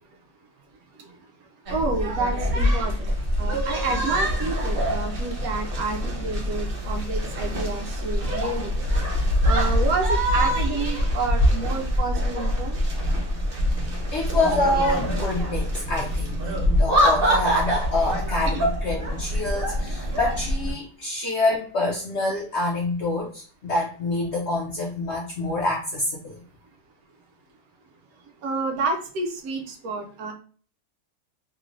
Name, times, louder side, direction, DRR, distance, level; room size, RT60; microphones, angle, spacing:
sound 1, 1.7-20.7, equal, 50° right, 0.7 m, -24 dB
voice 1, 1.7-3.1 3.4-8.7 9.4-12.8 28.4-30.3, right 3 dB, 70° right, 4 dB, 1.0 m, -29 dB
voice 2, 14.1-16.4 16.7-26.4, left 2 dB, 65° left, -1 dB, 0.7 m, -26 dB
3.1 x 2.9 x 2.4 m, 0.41 s
omnidirectional pair, 1.7 m